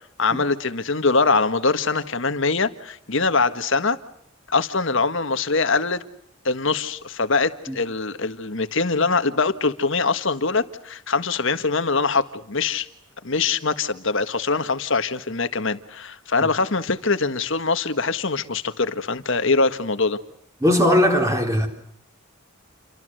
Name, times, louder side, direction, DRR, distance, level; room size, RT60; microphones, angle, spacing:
voice 1, 0.2-4.0 4.5-6.0 6.4-12.9 13.2-20.2, left 4 dB, 60° left, 1.6 m, -23 dB
voice 2, 20.6-21.7, left 1 dB, 15° right, 3.9 m, -19 dB
29.0 x 24.0 x 7.9 m
head